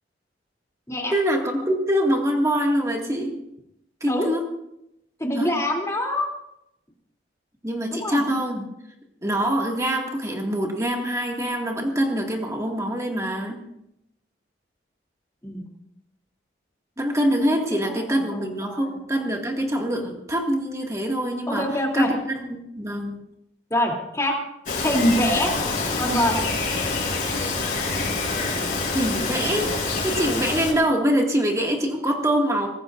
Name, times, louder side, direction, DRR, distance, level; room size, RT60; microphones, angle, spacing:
voice 1, 1.1-3.3 4.0-4.5 5.4-5.5 7.6-8.7 9.2-13.6 17.0-23.1 28.9-29.8 30.0-32.7, equal, 15° right, 0 dB, 2.1 m, -24 dB
voice 2, 5.2-6.3 7.9-8.2 15.4-15.7 17.9-18.9 21.5-22.1 23.7-24.4 24.8-25.5 26.0-26.4, left 1 dB, 15° left, -1 dB, 3.1 m, -24 dB
Bird vocalization bird call bird song, 24.7-30.7, left 3 dB, 45° left, 5.1 m, -26 dB
24.0 x 19.0 x 2.6 m, 0.82 s
head